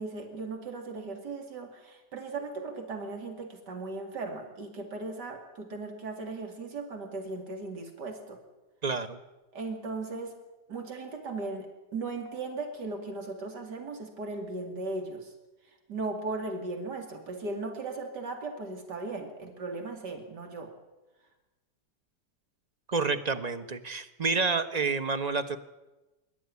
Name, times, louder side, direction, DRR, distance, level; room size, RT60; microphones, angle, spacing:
voice 1, 0.0-8.4 9.5-10.3 10.7-15.3 15.9-20.7, right 3 dB, 80° right, 3 dB, 3.2 m, -37 dB
voice 2, 8.8-9.2 22.9-25.6, right 4 dB, 25° right, 10 dB, 1.1 m, -29 dB
25.0 x 12.5 x 9.7 m, 1.1 s
omnidirectional pair, 1.8 m